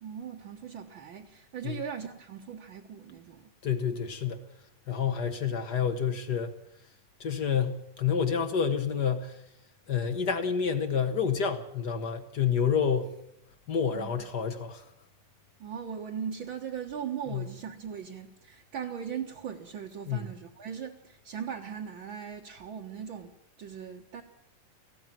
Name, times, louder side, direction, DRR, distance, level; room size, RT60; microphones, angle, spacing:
voice 1, 0.0-3.5 13.9-14.1 15.6-23.3 23.6-24.2, right 8 dB, 50° right, 1.8 m, -39 dB
voice 2, 3.6-4.4 4.9-6.6 7.2-9.4 9.9-13.1 13.7-14.8 17.3-17.5 20.1-20.3, left 7 dB, 55° left, 1.2 m, -29 dB
18.5 x 15.5 x 9.0 m
omnidirectional pair, 3.6 m